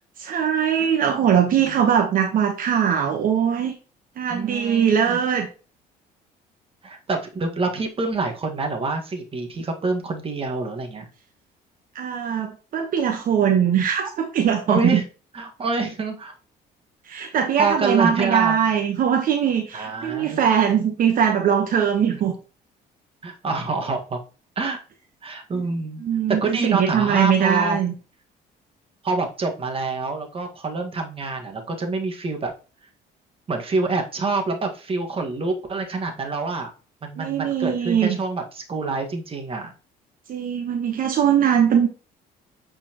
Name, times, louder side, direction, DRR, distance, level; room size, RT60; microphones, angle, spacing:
voice 1, 0.2-3.7 4.2-5.5 11.9-15.0 17.1-22.4 25.5-25.6 26.0-27.9 37.2-38.2 40.3-41.9, right 8 dB, 55° right, 3 dB, 1.1 m, -21 dB
voice 2, 4.3-5.2 6.8-11.1 14.7-15.0 15.3-16.3 17.6-18.6 19.7-20.4 22.1-22.2 23.2-24.2 24.6-24.8 25.2-26.0 26.4-27.8 29.0-32.5 33.5-36.7 37.0-39.7, right 3 dB, 35° right, 4 dB, 1.6 m, -26 dB
8.5 x 4.4 x 2.9 m, 0.34 s
cardioid pair, 110°, 17 cm